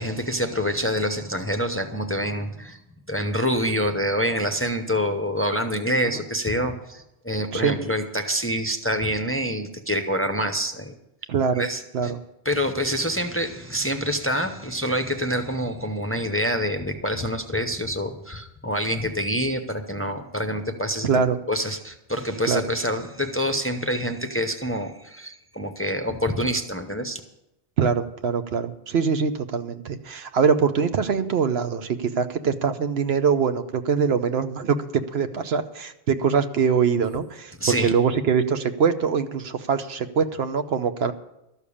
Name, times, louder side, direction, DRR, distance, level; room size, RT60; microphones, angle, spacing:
voice 1, 0.0-2.8 3.1-11.0 11.6-12.1 12.4-21.1 21.5-27.2 37.6-37.9, equal, 15° left, 5 dB, 0.7 m, -26 dB
voice 2, 11.3-11.6 11.9-12.2 21.0-21.4 22.5-22.6 27.8-34.8 35.1-41.1, right 6 dB, 70° right, 9 dB, 1.0 m, -23 dB
13.0 x 6.9 x 8.5 m, 0.87 s
omnidirectional pair, 1.1 m